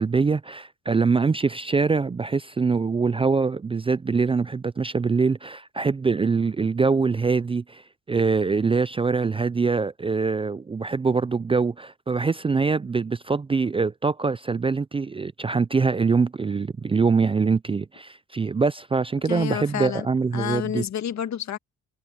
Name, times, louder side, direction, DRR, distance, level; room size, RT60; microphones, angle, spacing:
voice 1, 0.0-20.8, right 4 dB, 20° right, 0.4 m, -24 dB
voice 2, 19.2-20.1 20.3-21.6, left 10 dB, 65° left, 1.9 m, -29 dB
cardioid pair, 90°, 30 cm